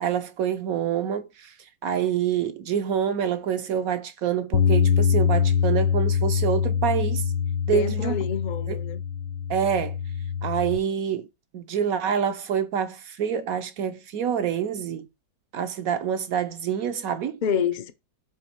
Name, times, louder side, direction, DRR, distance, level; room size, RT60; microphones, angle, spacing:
voice 1, 0.0-1.5 1.8-7.2 7.7-8.2 8.7-8.8 9.5-10.0 10.4-11.3 11.5-15.1 15.5-17.4, right 8 dB, 65° right, 1.0 m, -26 dB
Bass guitar, 4.5-10.8, left 7 dB, 85° left, 1.3 m, -24 dB
voice 2, 7.7-9.0 17.4-17.9, left 7 dB, 65° left, 0.4 m, -27 dB
7.3 x 3.1 x 4.3 m
omnidirectional pair, 1.8 m